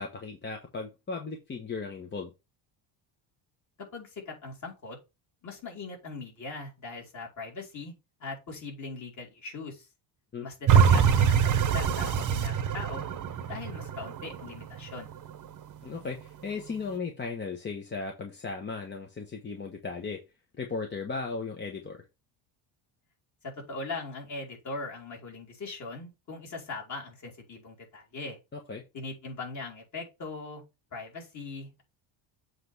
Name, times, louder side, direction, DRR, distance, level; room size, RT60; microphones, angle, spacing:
voice 1, 0.0-2.3 10.3-10.5 15.8-20.2 20.6-22.0 28.5-28.8, left 4 dB, 25° left, 1.1 m, -36 dB
voice 2, 3.9-5.0 5.4-7.9 8.2-9.9 10.4-13.0 13.5-15.1 23.4-28.4 28.9-30.6 30.9-31.8, left 3 dB, 40° left, 3.7 m, -40 dB
sound 1, 10.7-15.7 16.2-16.3, right 7 dB, 40° right, 1.0 m, -24 dB
7.7 x 3.3 x 5.9 m
cardioid pair, 145°, 46 cm